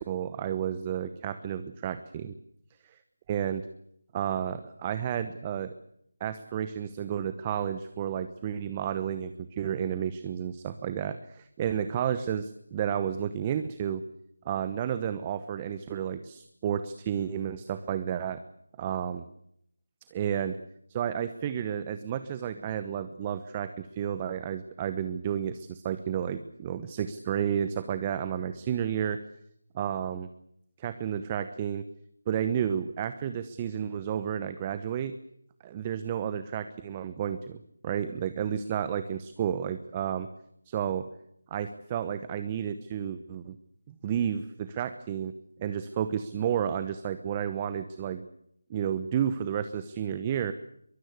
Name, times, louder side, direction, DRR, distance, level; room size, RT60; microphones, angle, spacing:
voice 1, 0.0-2.3 2.9-3.0 3.3-3.6 4.1-5.7 6.2-14.0 14.4-18.4 18.8-19.2 20.1-20.6 20.9-29.2 29.7-30.3 30.8-31.8 32.3-35.1 35.6-40.3 40.7-41.0 41.5-43.6 43.9-45.3 45.6-48.2 48.7-50.5, right 9 dB, 20° right, 12 dB, 1.0 m, -31 dB
23.0 x 22.0 x 8.4 m, 0.74 s
figure-of-eight pair, 160°, 0 cm